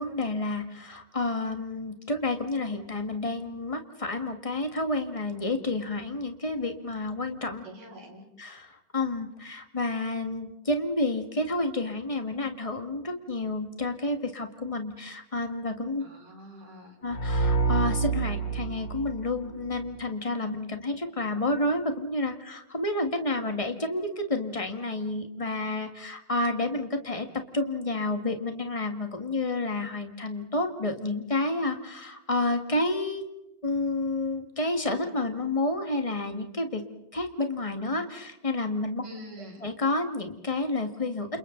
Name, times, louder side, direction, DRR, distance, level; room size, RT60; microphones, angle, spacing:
voice 1, 0.0-7.6 8.4-16.0 17.0-27.3 27.5-33.2 33.6-36.8 37.1-39.0 39.6-41.3, left 2 dB, 20° left, 6 dB, 1.0 m, -30 dB
voice 2, 7.6-8.3 16.0-17.0 39.0-39.7, equal, 80° right, 0 dB, 7.5 m, -45 dB
sound 1, 17.1-19.9, right 4 dB, 40° left, 3.5 m, -28 dB
29.5 x 28.5 x 4.0 m, 0.91 s
omnidirectional pair, 3.8 m